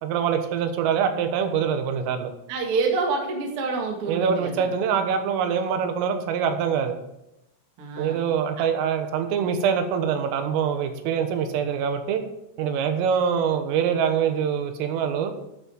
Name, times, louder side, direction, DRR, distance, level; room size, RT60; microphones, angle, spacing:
voice 1, 0.0-2.3 4.1-6.9 8.0-12.2 12.6-15.3, right 7 dB, 85° right, 7 dB, 3.7 m, -24 dB
voice 2, 2.5-4.6 7.8-8.2, right 4 dB, 65° right, 1 dB, 1.4 m, -27 dB
12.0 x 8.4 x 4.5 m, 0.86 s
omnidirectional pair, 5.9 m